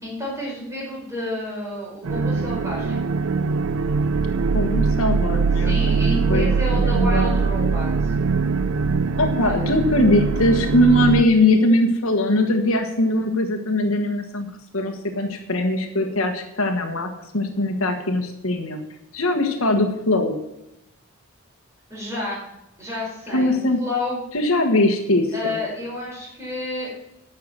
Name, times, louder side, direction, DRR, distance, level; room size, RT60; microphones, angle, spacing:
voice 1, 0.0-3.0 5.6-8.1 9.4-9.6 21.9-22.4 22.8-24.2 25.3-26.9, left 2 dB, 15° right, -5 dB, 5.1 m, -30 dB
sound 1, 2.0-11.2, right 4 dB, 65° right, 0.4 m, -22 dB
voice 2, 4.5-5.7 6.3-6.5 6.7-7.3 9.2-14.5 14.7-18.8 19.1-20.4 23.3-23.8 24.3-25.5, left 1 dB, 70° left, 4 dB, 1.4 m, -21 dB
10.5 x 6.7 x 7.4 m, 0.87 s
head